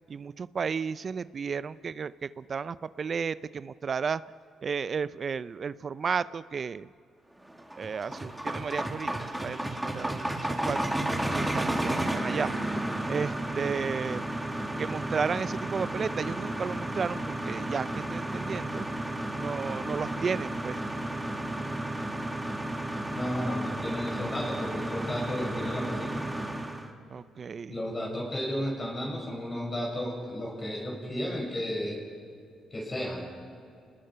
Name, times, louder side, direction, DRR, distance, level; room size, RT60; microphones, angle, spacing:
voice 1, 0.1-4.2 4.6-6.9 7.8-11.0 11.3-12.5 13.1-14.2 14.8-18.9 19.3-20.8 27.1-27.8, right 6 dB, 45° right, 16 dB, 0.4 m, -33 dB
sound 1, 7.5-26.9, right 1 dB, 5° right, 2.0 m, -32 dB
voice 2, 23.1-26.3 27.7-32.0 32.7-33.3, equal, 25° left, -2 dB, 5.8 m, -33 dB
29.0 x 20.0 x 5.7 m, 2.3 s
cardioid pair, 90°, 0 cm